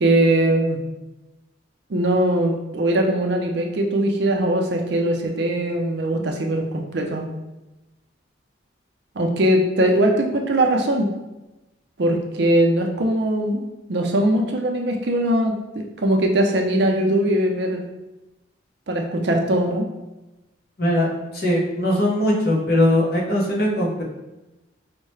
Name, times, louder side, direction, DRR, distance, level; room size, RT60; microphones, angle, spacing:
voice 1, 0.0-0.8 1.9-7.3 9.2-11.1 12.0-13.6 13.9-17.8 18.9-19.9, right 1 dB, 60° right, 2 dB, 0.5 m, -21 dB
voice 2, 21.3-24.0, left 1 dB, 50° left, -3 dB, 0.8 m, -20 dB
4.5 x 2.1 x 3.1 m, 1.0 s
head